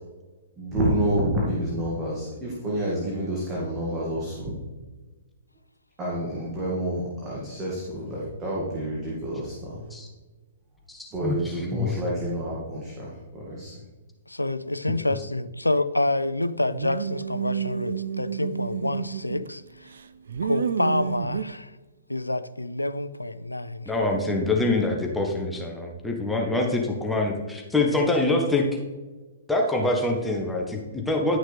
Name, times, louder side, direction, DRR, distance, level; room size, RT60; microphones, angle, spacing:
voice 1, 0.6-4.5 6.0-9.8 11.1-13.7, right 1 dB, 20° right, 2.1 m, -28 dB
voice 2, 10.9-12.0 23.9-28.7 29.5-31.4, left 2 dB, 5° left, 1.1 m, -25 dB
voice 3, 14.3-19.9 20.4-21.7 22.1-23.9, left 2 dB, 90° left, 0.4 m, -28 dB
sound 1, 16.7-19.5 19.9-21.4, right 7 dB, 60° right, 0.4 m, -29 dB
11.0 x 6.3 x 3.3 m
figure-of-eight pair, 115°, 0 cm